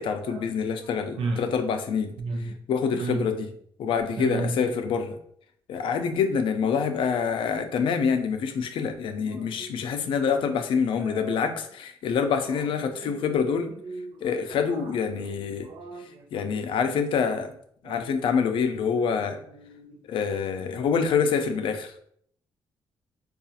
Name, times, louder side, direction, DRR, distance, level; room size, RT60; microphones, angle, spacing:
voice 1, 0.0-2.1 2.4-3.5 3.8-5.2 5.7-13.7 14.2-15.7 16.3-17.5 17.8-19.4 20.1-21.9, left 6 dB, 75° left, 0.5 m, -26 dB
voice 2, 2.2-2.6 2.9-3.3 4.2-4.6 9.4-9.7 11.0-11.3 12.5-12.6 13.0-13.2 13.8-14.2 15.6-16.3 17.8-18.1 18.8-18.9 19.6-20.0, right 3 dB, 85° right, 0.5 m, -33 dB
4.7 x 2.4 x 2.7 m
cardioid pair, 120°, 9 cm